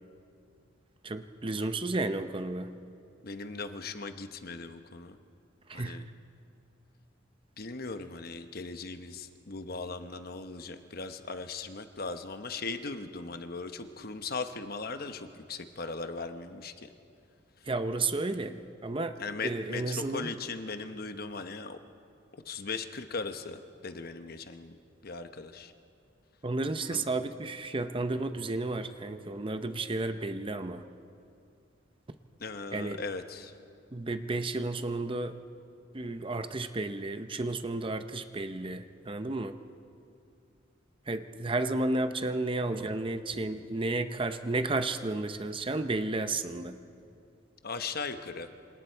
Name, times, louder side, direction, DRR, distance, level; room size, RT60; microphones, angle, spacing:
voice 1, 1.0-2.7 5.7-6.0 17.7-19.2 19.4-20.3 26.4-30.8 32.7-33.0 33.9-35.4 35.9-39.6 41.1-46.8, right 2 dB, 25° right, 9 dB, 0.7 m, -32 dB
voice 2, 3.2-5.2 5.7-6.0 7.6-16.9 19.2-21.8 22.3-24.8 25.0-25.7 26.9-27.0 32.4-33.5 47.6-48.5, left 4 dB, 50° left, 8 dB, 1.0 m, -38 dB
26.5 x 26.5 x 4.6 m, 2.5 s
head